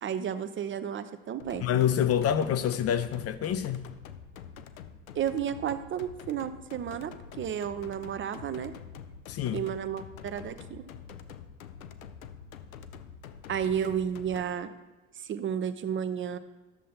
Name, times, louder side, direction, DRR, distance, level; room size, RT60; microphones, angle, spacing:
voice 1, 0.0-1.7 5.1-8.7 9.5-10.8 13.5-14.7 15.2-16.4, right 8 dB, 30° right, 0.6 m, -32 dB
sound 1, 1.4-14.5, left 7 dB, 75° left, 0.7 m, -46 dB
voice 2, 1.6-3.9 9.3-9.6, left 9 dB, 35° left, 0.6 m, -27 dB
12.5 x 7.3 x 2.8 m
figure-of-eight pair, 65°, 42 cm